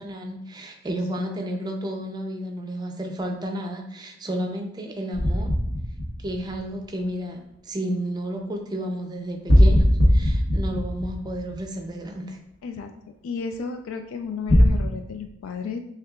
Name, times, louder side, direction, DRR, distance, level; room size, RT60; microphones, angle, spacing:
voice 1, 0.0-5.5 6.2-12.4, right 1 dB, 20° right, 3 dB, 0.4 m, -32 dB
sound 1, 5.1-7.0 9.5-12.0 14.5-14.7, equal, 55° left, 0.9 m, -19 dB
voice 2, 13.2-15.8, left 5 dB, 75° left, 6 dB, 0.3 m, -33 dB
6.3 x 2.3 x 2.3 m, 0.87 s
head